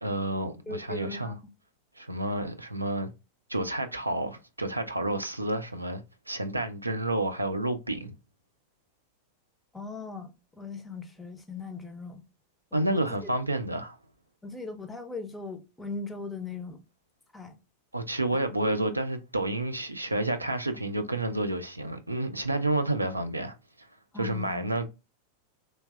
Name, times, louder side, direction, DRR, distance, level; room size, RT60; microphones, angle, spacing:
voice 1, 0.0-1.3 2.0-3.1 3.5-8.1 12.7-14.0 17.9-23.5 24.2-24.9, right 1 dB, 85° right, 0.4 m, -30 dB
voice 2, 0.7-1.4 9.7-12.2 12.7-13.3 14.4-16.8 17.3-17.6 24.1-24.7, left 3 dB, 10° left, 0.5 m, -39 dB
3.0 x 2.6 x 2.2 m
figure-of-eight pair, 90°, 0 cm